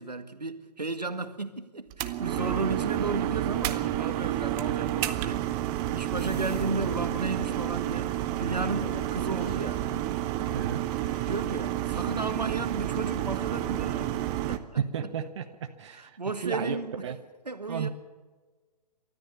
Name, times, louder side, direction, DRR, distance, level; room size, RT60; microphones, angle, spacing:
voice 1, 0.0-5.5 5.9-8.1 8.4-9.8 11.2-14.2 14.5-15.1 15.9-17.1 17.5-17.9, right 3 dB, 80° right, 1.9 m, -34 dB
sound 1, 1.9-14.6, right 14 dB, 20° right, 0.9 m, -30 dB
sound 2, 6.2-12.8 13.0-13.6, left 2 dB, 70° left, 3.8 m, -47 dB
voice 2, 14.8-16.1 16.4-16.8 17.0-17.2 17.7-17.9, right 8 dB, 45° right, 1.4 m, -32 dB
29.0 x 13.5 x 7.0 m
figure-of-eight pair, 130°, 21 cm